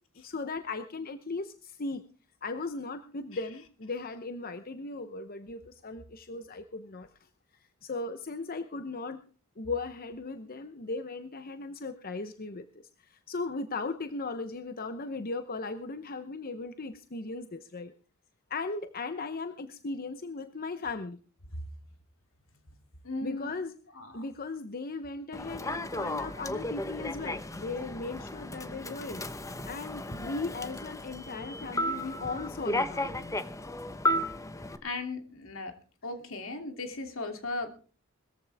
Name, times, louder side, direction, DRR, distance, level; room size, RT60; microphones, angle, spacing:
voice 1, 0.2-2.0 2.4-7.1 7.8-9.2 9.6-12.7 13.0-17.9 18.5-21.2 23.2-23.8 24.1-29.3 29.6-33.4, left 3 dB, 45° left, 9 dB, 0.9 m, -37 dB
voice 2, 23.0-23.5 24.0-24.2 34.8-35.7 36.0-37.7, left 2 dB, 75° left, 5 dB, 2.9 m, -36 dB
Human voice / Subway metro underground, 25.3-34.8, left 1 dB, 15° left, 1.0 m, -34 dB
20.5 x 14.5 x 3.5 m, 0.40 s
head